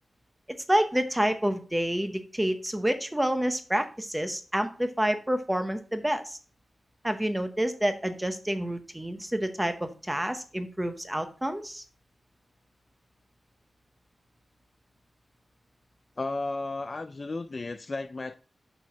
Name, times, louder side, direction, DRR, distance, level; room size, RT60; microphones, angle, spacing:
voice 1, 0.7-6.4 7.0-11.8, equal, 5° right, 0.8 m, -28 dB
voice 2, 16.2-18.3, left 3 dB, 35° left, 0.3 m, -33 dB
6.1 x 6.1 x 4.6 m
wide cardioid pair, 170°, 0 cm